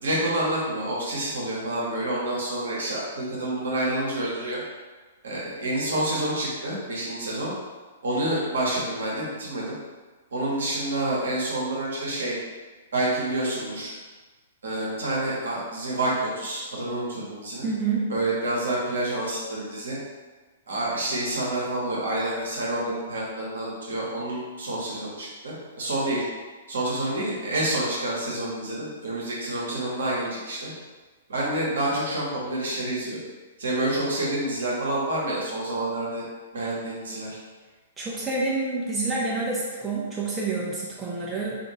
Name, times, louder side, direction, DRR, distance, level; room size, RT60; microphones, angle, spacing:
voice 1, 0.0-4.6 5.2-7.5 8.0-9.7 10.3-12.4 12.9-13.9 14.6-17.7 18.1-20.0 20.7-26.2 26.7-30.7 31.3-33.2 33.6-36.2 36.5-37.4, right 1 dB, 65° right, -5 dB, 0.9 m, -28 dB
voice 2, 17.6-18.1 38.0-41.6, right 3 dB, 15° right, -6 dB, 0.5 m, -28 dB
2.5 x 2.5 x 2.9 m, 1.3 s
figure-of-eight pair, 110°, 0 cm